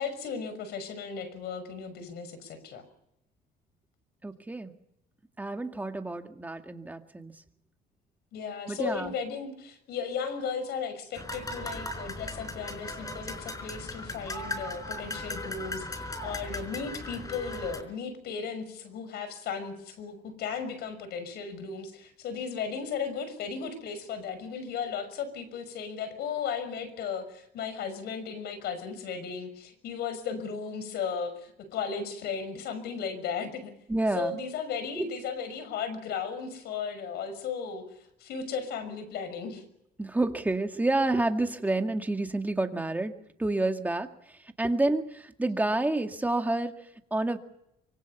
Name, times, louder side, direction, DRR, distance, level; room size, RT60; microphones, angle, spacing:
voice 1, 0.0-2.9 8.3-33.7 34.1-39.6, left 6 dB, 75° left, 12 dB, 6.0 m, -35 dB
voice 2, 4.2-4.7 5.4-7.3 8.7-9.1 33.9-34.3 35.0-35.1 40.0-47.4, right 2 dB, 10° right, 5 dB, 2.1 m, -29 dB
sound 1, 11.1-17.8, left 2 dB, 20° left, 4.5 m, -38 dB
25.0 x 24.5 x 5.7 m, 0.81 s
cardioid pair, 110°, 17 cm